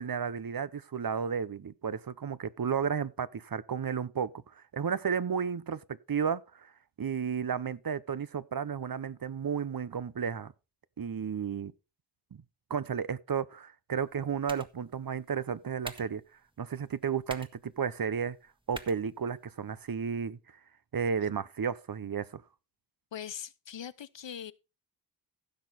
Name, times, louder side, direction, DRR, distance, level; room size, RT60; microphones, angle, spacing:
voice 1, 0.0-4.3 4.7-5.8 6.1-6.7 7.0-10.5 11.0-11.7 12.7-16.2 16.6-18.4 18.7-20.4 20.9-22.4, right 7 dB, 50° right, 0.7 m, -33 dB
sound 1, 13.9-19.9, right 1 dB, 10° right, 1.4 m, -51 dB
voice 2, 23.1-24.5, left 9 dB, 75° left, 0.7 m, -41 dB
15.5 x 6.2 x 4.1 m
wide cardioid pair, 45°, 44 cm